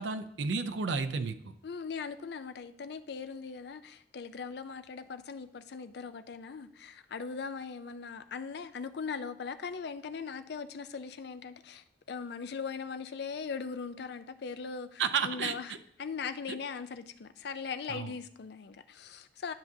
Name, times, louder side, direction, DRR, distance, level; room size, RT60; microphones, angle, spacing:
voice 1, 0.0-1.5 15.0-15.5 17.9-18.1, right 5 dB, 75° right, 0.5 m, -32 dB
voice 2, 1.6-15.7 16.0-19.5, left 5 dB, 60° left, 0.4 m, -40 dB
10.5 x 5.9 x 2.7 m
head